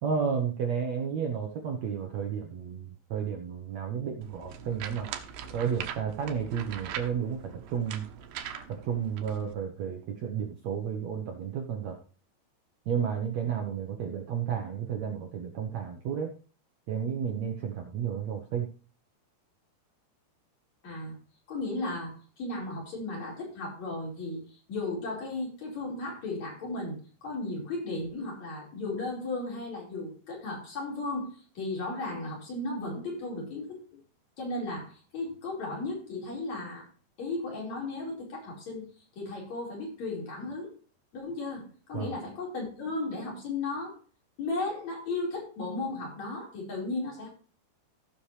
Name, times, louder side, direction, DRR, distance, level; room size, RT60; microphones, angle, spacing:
voice 1, 0.0-5.1 5.5-8.1 8.7-11.9 12.9-16.3 16.9-18.7 41.9-42.1, right 7 dB, 90° right, 2 dB, 1.5 m, -32 dB
sound 1, 4.2-9.5, right 9 dB, 70° right, 2.6 m, -41 dB
voice 2, 20.8-21.2 21.5-27.0 27.2-34.0 34.4-36.9 37.2-38.9 39.2-40.7 41.1-44.0 44.4-47.3, left 2 dB, 40° left, -2 dB, 5.8 m, -35 dB
16.0 x 7.2 x 3.3 m, 0.39 s
omnidirectional pair, 4.9 m